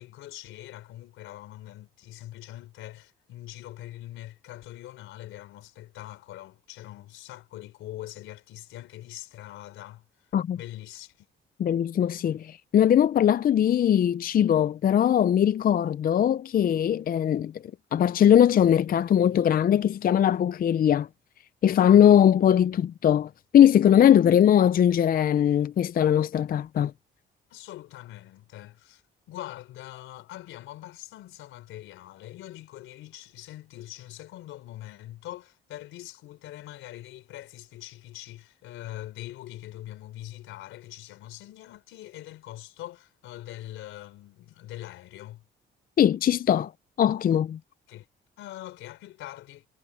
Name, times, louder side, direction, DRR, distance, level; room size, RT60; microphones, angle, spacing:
voice 1, 0.0-10.1 10.5-11.3 24.1-24.3 27.5-29.0 29.3-45.4 47.9-48.1 48.4-49.7, left 14 dB, 90° left, 4.0 m, -43 dB
voice 2, 11.6-17.5 17.9-21.1 21.6-26.9 46.0-46.7 47.0-47.6, left 10 dB, 45° left, 0.5 m, -20 dB
cardioid pair, 90°, 20 cm